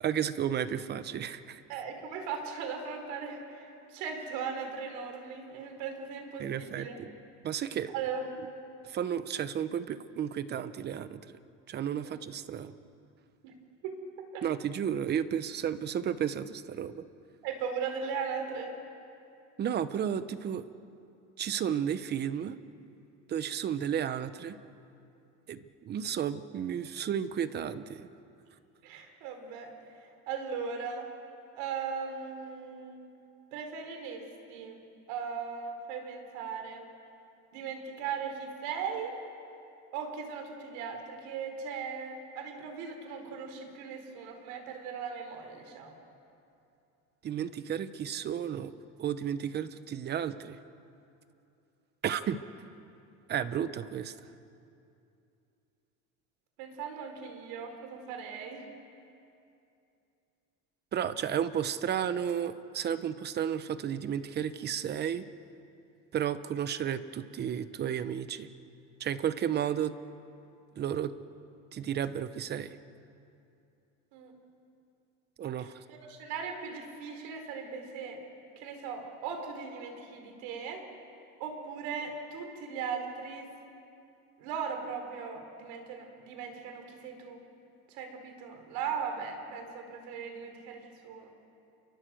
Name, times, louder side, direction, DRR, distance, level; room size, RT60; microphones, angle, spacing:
voice 1, 0.0-1.6 6.4-7.1 7.4-7.9 8.9-11.2 11.7-12.7 14.4-17.0 19.6-20.6 21.4-22.6 23.3-24.6 25.5-28.1 47.2-48.7 49.0-50.6 52.0-52.4 53.3-54.1 60.9-65.2 66.1-68.5 69.0-69.9 70.8-71.1 71.7-72.8 75.4-75.7, right 9 dB, 30° right, 13 dB, 1.0 m, -32 dB
voice 2, 1.7-6.9 7.9-8.3 12.0-12.2 13.4-13.5 13.8-14.5 17.4-18.7 28.8-29.7 30.0-31.1 31.5-33.1 33.5-34.2 34.5-34.8 35.1-36.9 37.5-39.2 39.9-45.9 56.6-58.7 74.1-74.3 75.6-78.2 78.6-80.8 81.4-83.5 84.4-87.4 87.9-91.3, right 6 dB, 80° right, 5 dB, 4.9 m, -38 dB
28.5 x 23.5 x 7.8 m, 2.7 s
cardioid pair, 155°, 32 cm